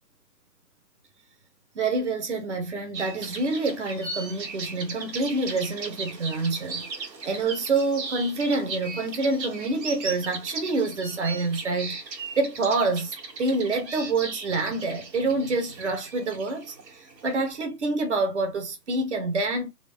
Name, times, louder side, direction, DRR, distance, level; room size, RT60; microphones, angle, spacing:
voice 1, 1.7-19.7, right 3 dB, 45° right, 1.1 m, -27 dB
sound 1, 2.9-17.5, right 4 dB, 90° right, 1.4 m, -38 dB
4.0 x 2.1 x 3.5 m
hypercardioid pair, 165°, 49 cm